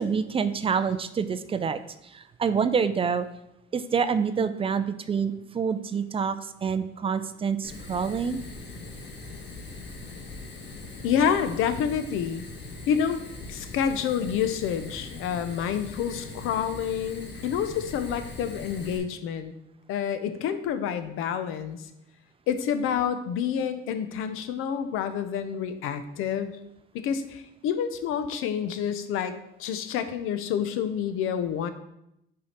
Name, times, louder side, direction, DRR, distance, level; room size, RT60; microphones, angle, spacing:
voice 1, 0.0-1.8 2.1-3.3 3.7-8.4, right 6 dB, 25° right, 12 dB, 0.4 m, -27 dB
Fire, 7.6-19.0, left 3 dB, 60° left, 1.6 m, -41 dB
voice 2, 11.0-12.4 12.9-13.2 13.5-19.5 19.9-21.8 22.5-26.6 26.9-29.3 29.6-31.7, left 8 dB, 85° left, 10 dB, 0.8 m, -28 dB
6.1 x 4.8 x 5.8 m, 0.82 s
cardioid pair, 130°, 21 cm